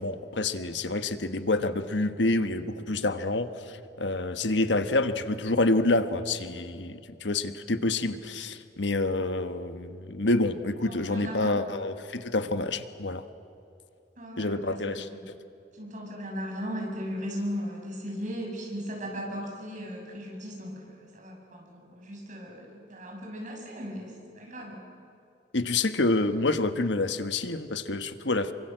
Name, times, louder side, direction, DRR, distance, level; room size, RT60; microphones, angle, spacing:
voice 1, 0.0-13.2 14.4-15.3 25.5-28.5, left 2 dB, 90° left, 10 dB, 1.4 m, -28 dB
voice 2, 10.9-11.6 14.2-15.2 15.7-24.8, equal, 45° right, 0 dB, 6.9 m, -37 dB
28.0 x 24.5 x 7.9 m, 2.5 s
head